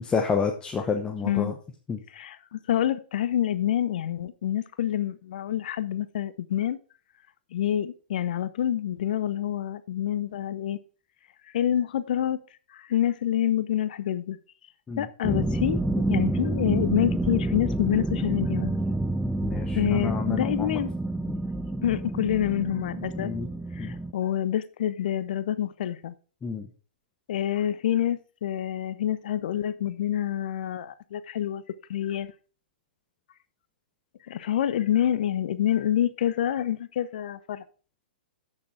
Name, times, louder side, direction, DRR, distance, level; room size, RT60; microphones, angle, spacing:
voice 1, 0.0-1.5 1.9-2.0 14.9-15.1 19.4-20.8 21.3-21.4 23.2-23.5 23.8-23.9 26.4-26.7, left 5 dB, 15° left, 3 dB, 1.0 m, -29 dB
voice 2, 1.2-1.5 2.1-6.8 7.5-10.8 11.5-12.4 12.7-14.4 15.0-18.8 19.7-20.9 21.8-23.3 23.7-26.1 27.3-31.6 31.9-32.3 34.3-37.6, left 11 dB, 60° left, 15 dB, 0.6 m, -27 dB
sound 1, 15.2-24.1, right 2 dB, ahead, 0.6 m, -28 dB
8.5 x 6.5 x 4.7 m, 0.38 s
hypercardioid pair, 120°, 5 cm